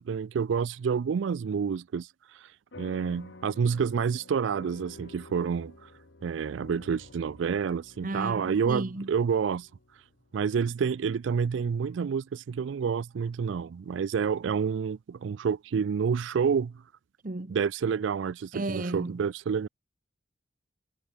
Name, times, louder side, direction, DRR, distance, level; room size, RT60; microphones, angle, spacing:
voice 1, 0.0-2.5 2.8-5.9 6.2-9.7 10.3-16.8 17.5-19.7, right 6 dB, 80° right, 0.4 m, -29 dB
sound 1, 2.7-11.5, left 2 dB, 70° left, 1.4 m, -51 dB
voice 2, 8.0-9.1 17.2-17.6 18.5-19.2, right 2 dB, 45° right, 1.0 m, -33 dB
head